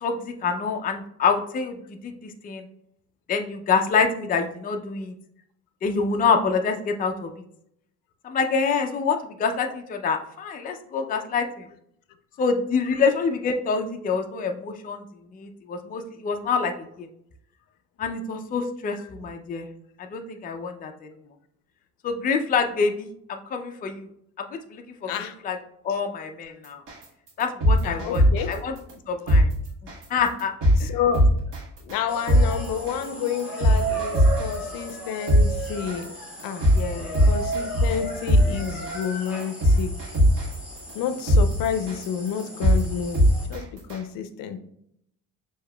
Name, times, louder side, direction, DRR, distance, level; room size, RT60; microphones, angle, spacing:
voice 1, 0.0-2.6 3.3-5.1 5.8-7.3 8.2-11.7 12.4-15.0 15.3-17.1 18.0-19.7 20.0-20.9 22.0-24.1 24.4-25.1 25.4-25.6 25.8-26.8 27.4-28.7 29.1-29.5 30.1-30.5 30.8-30.9 36.7-37.3, left 5 dB, 25° left, 5 dB, 0.4 m, -26 dB
sound 1, 26.9-27.0 27.4-28.5 28.9-29.0 29.3-29.4 29.9-30.0 30.4-30.8 31.1-31.6 31.9-32.0 32.3-32.4 32.9-33.0 33.4-34.5 34.9-35.0 35.3-35.4 35.9-36.0 36.4-36.8 37.1-38.0 38.3-38.4 38.9-39.0 39.4-40.5 40.9-41.0 41.3-41.4 41.9-42.0 42.4-42.8 43.1-43.6 43.9-44.0, equal, 65° right, 1.4 m, -18 dB
voice 2, 27.8-28.6 30.8-31.3 31.8-36.1 36.4-36.7 37.3-40.0 40.9-43.2 43.5-44.6, left 8 dB, 75° left, 10 dB, 0.5 m, -30 dB
sound 2, 32.1-43.5, right 3 dB, 5° right, 1.4 m, -35 dB
6.6 x 2.8 x 2.2 m, 0.73 s
cardioid pair, 115°, 34 cm